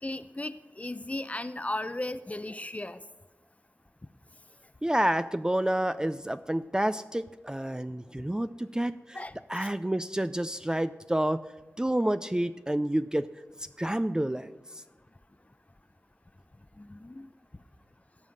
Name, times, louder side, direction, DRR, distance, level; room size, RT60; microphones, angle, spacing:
voice 1, 0.0-3.0 9.1-9.7 16.8-17.3, left 2 dB, 25° left, 13 dB, 0.7 m, -36 dB
voice 2, 4.8-9.2 9.5-11.4 11.8-13.3 13.8-14.8, right 1 dB, 15° right, 12 dB, 0.4 m, -29 dB
16.0 x 5.5 x 7.7 m, 1.1 s
wide cardioid pair, 55°, 5 cm